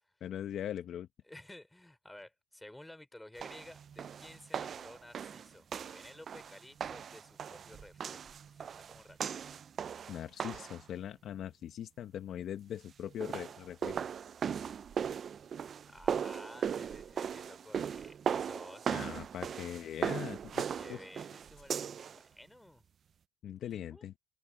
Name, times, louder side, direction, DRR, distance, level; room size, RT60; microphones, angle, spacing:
voice 1, 0.2-1.1 10.1-14.0 18.9-21.1 23.4-24.1, left 10 dB, 50° left, 0.8 m, -41 dB
voice 2, 1.3-5.7 5.9-9.3 15.8-19.3 20.6-22.8 23.7-24.1, left 1 dB, 5° left, 3.6 m, -53 dB
sound 1, 3.4-10.8 13.0-22.2, right 7 dB, 35° right, 0.4 m, -38 dB
cardioid pair, 135°, 0 cm